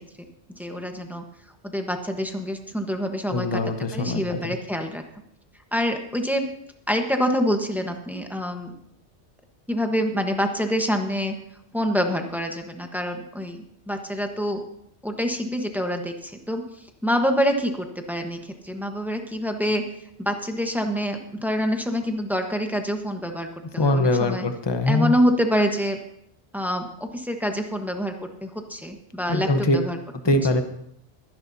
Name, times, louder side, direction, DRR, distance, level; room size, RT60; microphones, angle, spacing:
voice 1, 0.5-1.2 1.6-3.6 3.9-5.0 5.7-6.5 6.9-8.7 9.7-11.3 11.7-14.6 15.0-16.6 17.0-19.8 20.2-23.5 23.7-24.5 24.9-26.0 26.5-28.1 28.4-30.0, equal, ahead, 4 dB, 1.1 m, -26 dB
voice 2, 3.3-4.6 23.8-25.1 29.3-29.8 30.2-30.6, left 2 dB, 25° left, 7 dB, 0.9 m, -22 dB
22.0 x 10.5 x 2.8 m, 0.74 s
omnidirectional pair, 1.1 m